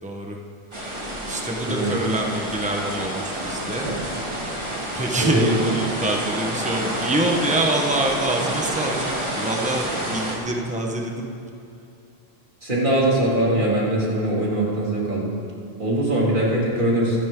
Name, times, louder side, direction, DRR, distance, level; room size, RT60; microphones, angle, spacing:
voice 1, 0.0-0.4 1.3-3.9 4.9-11.3, right 1 dB, 5° right, 0 dB, 1.3 m, -25 dB
sound 1, 0.7-10.3, right 1 dB, 25° right, 2.1 m, -29 dB
voice 2, 1.7-2.0 3.9-4.0 5.2-5.6 12.6-15.3 15.8-17.2, right 1 dB, 50° right, -6 dB, 3.6 m, -22 dB
25.0 x 10.5 x 3.9 m, 2.7 s
omnidirectional pair, 1.1 m